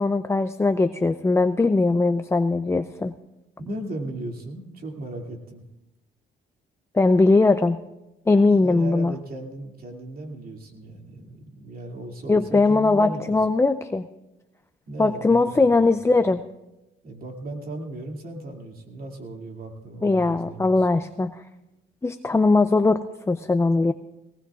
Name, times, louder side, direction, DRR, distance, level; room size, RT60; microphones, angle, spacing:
voice 1, 0.0-3.1 6.9-7.8 8.3-9.2 12.3-14.1 15.0-16.4 20.0-21.4 22.0-23.9, left 3 dB, 15° left, 9 dB, 0.4 m, -20 dB
voice 2, 3.6-5.6 8.6-13.4 14.9-15.7 17.0-20.9, right 1 dB, 50° right, 2 dB, 2.5 m, -36 dB
19.0 x 18.5 x 2.4 m, 0.97 s
cardioid pair, 90°, 20 cm